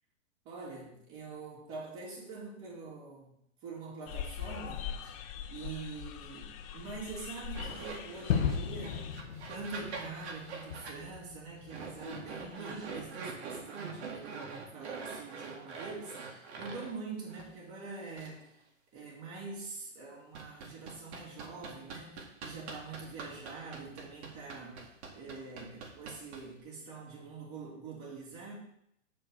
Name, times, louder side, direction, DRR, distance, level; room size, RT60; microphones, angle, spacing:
voice 1, 0.4-3.4 3.6-9.2 9.5-14.4 14.7-18.6 18.9-28.5, right 4 dB, 35° right, -3 dB, 2.4 m, -45 dB
sound 1, 4.1-9.2, left 9 dB, 30° left, 0.4 m, -42 dB
sound 2, 7.5-8.6 8.8-11.0 11.7-16.9 17.3-17.4 18.2-18.3 20.3-26.6, right 4 dB, 55° right, 2.0 m, -44 dB
Gunshot gunfire / Fireworks / Boom, 8.3-13.1, left 7 dB, 70° left, 0.9 m, -36 dB
6.8 x 4.5 x 6.2 m, 0.74 s
hypercardioid pair, 125°, 38 cm